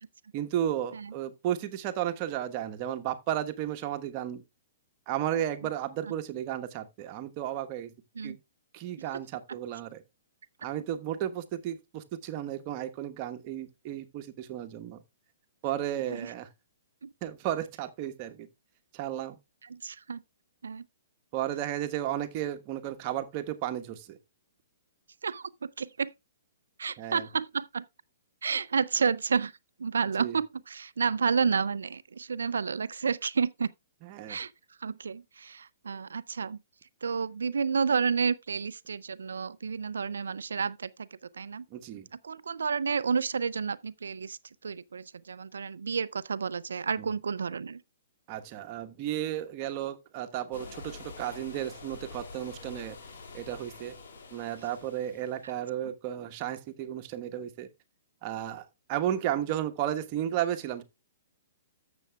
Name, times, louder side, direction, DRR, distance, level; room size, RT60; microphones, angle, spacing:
voice 1, 0.3-4.4 5.1-7.9 8.2-8.4 8.7-10.0 10.6-15.0 15.6-16.5 17.2-18.5 18.9-19.4 21.3-24.2 27.0-27.3 30.2-30.4 34.0-34.4 41.7-42.1 47.0-47.1 48.3-53.0 53.3-53.9 54.3-57.7 58.2-60.8, right 11 dB, 40° right, 1.2 m, -33 dB
voice 2, 19.6-20.2 20.6-20.8 25.2-26.1 26.8-27.8 28.4-29.5 29.8-33.7 34.3-34.5 34.8-36.6 37.0-41.1 41.3-41.6 42.2-47.8 55.4-55.5 55.9-56.0, right 5 dB, 75° right, 0.4 m, -30 dB
sound 1, 50.5-55.6, left 4 dB, 65° left, 2.2 m, -47 dB
13.5 x 7.0 x 2.3 m
figure-of-eight pair, 120°, 0 cm